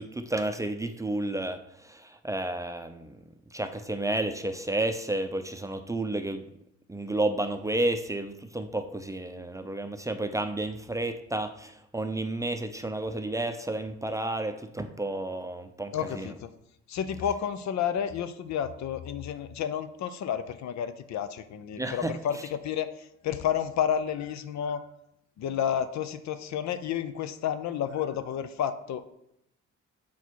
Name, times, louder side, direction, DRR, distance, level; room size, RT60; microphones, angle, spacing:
voice 1, 0.0-3.2 3.5-6.4 6.9-16.3 21.8-22.5, right 1 dB, 10° right, 7 dB, 0.5 m, -31 dB
voice 2, 15.9-16.5 16.9-22.9 23.2-24.8 25.4-29.1, left 9 dB, 65° left, 11 dB, 0.6 m, -31 dB
7.0 x 4.3 x 4.5 m, 0.79 s
cardioid pair, 90°, 30 cm